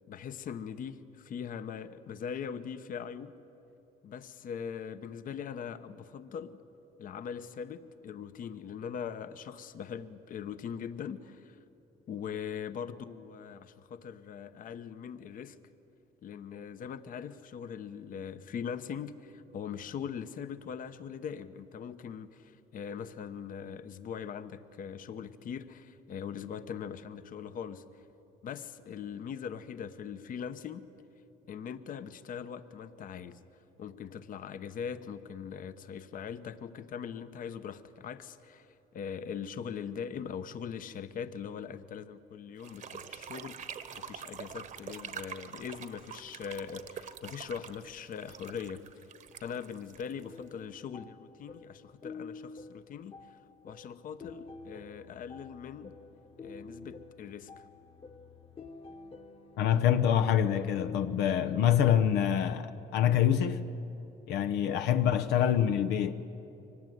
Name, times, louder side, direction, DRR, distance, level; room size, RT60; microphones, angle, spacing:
voice 1, 0.1-3.3 4.0-6.6 7.0-11.6 12.1-15.6 16.2-28.0 28.4-30.9 31.5-33.4 33.8-49.1 49.4-53.4 53.6-56.0 56.4-57.7, left 7 dB, 55° left, 1.0 m, -41 dB
sound 1, 42.6-50.6, right 7 dB, 50° right, 1.3 m, -45 dB
sound 2, 50.2-62.6, left 4 dB, 35° left, 1.3 m, -49 dB
voice 2, 59.6-63.7 64.3-66.1, left 9 dB, 85° left, 0.9 m, -26 dB
24.0 x 19.0 x 9.4 m
cardioid pair, 110°, 17 cm